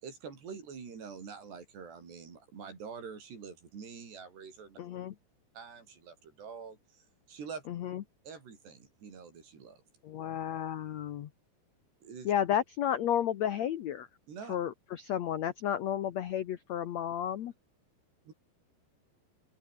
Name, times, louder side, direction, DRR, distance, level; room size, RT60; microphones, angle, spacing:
voice 1, 0.0-4.8 5.5-7.7 8.3-9.8 12.0-12.3 14.3-14.6 18.3-18.4, right 6 dB, 80° right, 7.5 m, -46 dB
voice 2, 4.8-5.1 7.7-8.0 10.0-11.3 12.2-14.1 14.5-17.5, left 10 dB, 85° left, 1.5 m, -32 dB
open air
omnidirectional pair, 4.8 m